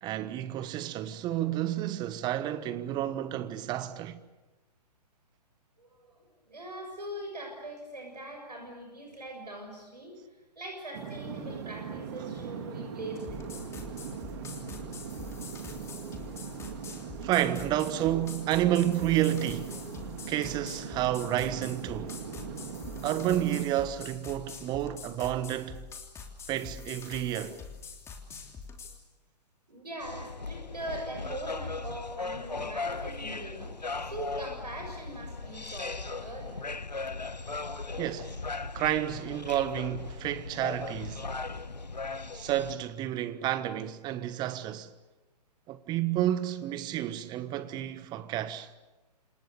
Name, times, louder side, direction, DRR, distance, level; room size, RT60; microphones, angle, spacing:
voice 1, 0.0-4.2 17.2-19.7 20.3-22.2 23.0-25.8 26.5-27.6 38.0-38.3 38.7-41.2 42.3-44.9 45.7-48.7, right 12 dB, 20° right, 1.3 m, -30 dB
voice 2, 5.8-10.2 10.6-13.7 29.7-36.6, right 1 dB, 75° right, 7.0 m, -42 dB
sound 1, 10.9-23.7, right 6 dB, 40° right, 3.4 m, -40 dB
Distorted Techno House Loop, 13.1-29.0, left 5 dB, 15° left, 3.2 m, -45 dB
sound 2, 30.0-42.7, left 3 dB, 80° left, 1.2 m, -38 dB
30.0 x 27.5 x 6.9 m
figure-of-eight pair, 120°, 21 cm